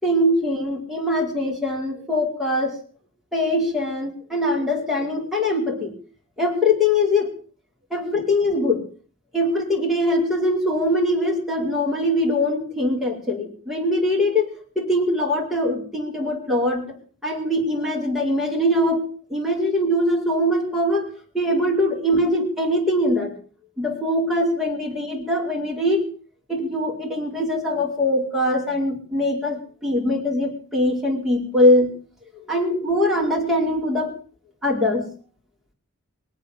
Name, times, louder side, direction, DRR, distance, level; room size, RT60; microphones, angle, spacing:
voice 1, 0.0-2.8 3.3-5.9 6.4-7.3 7.9-8.8 9.3-14.5 14.7-17.0 17.2-21.1 21.3-23.3 23.8-26.1 26.5-31.9 32.5-34.2 34.6-35.1, left 1 dB, ahead, -3 dB, 4.5 m, -22 dB
23.0 x 8.4 x 7.0 m, 0.42 s
head